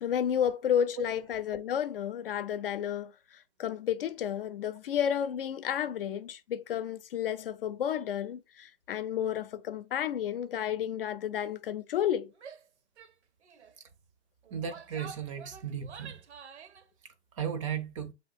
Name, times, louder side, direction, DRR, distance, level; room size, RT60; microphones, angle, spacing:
voice 1, 0.0-12.3, left 9 dB, 55° left, 0.6 m, -31 dB
Female speech woman speaking / Yell, 12.4-12.7 13.0-13.1 13.4-13.7 14.4-16.9, right 6 dB, 75° right, 0.7 m, -48 dB
voice 2, 14.5-16.2 17.0-18.1, right 8 dB, 30° right, 0.5 m, -36 dB
7.1 x 2.8 x 2.6 m
hypercardioid pair, 135°, 34 cm